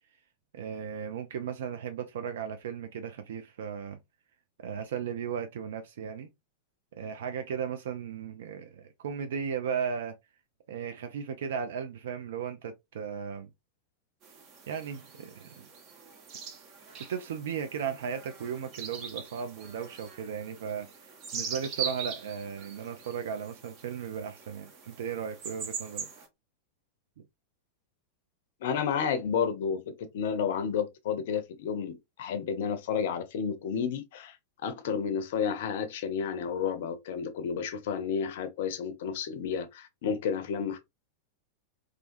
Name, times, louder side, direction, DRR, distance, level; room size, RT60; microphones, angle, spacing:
voice 1, 0.5-4.0 4.6-6.3 6.9-10.1 10.7-13.5 14.7-15.7 17.0-20.9 21.3-26.1, right 7 dB, 60° right, 0.3 m, -36 dB
sound 1, 14.2-26.3, right 6 dB, 35° right, 0.7 m, -42 dB
voice 2, 28.6-34.4 34.6-40.8, left 7 dB, 55° left, 0.4 m, -31 dB
2.4 x 2.2 x 2.4 m
figure-of-eight pair, 90°, 0 cm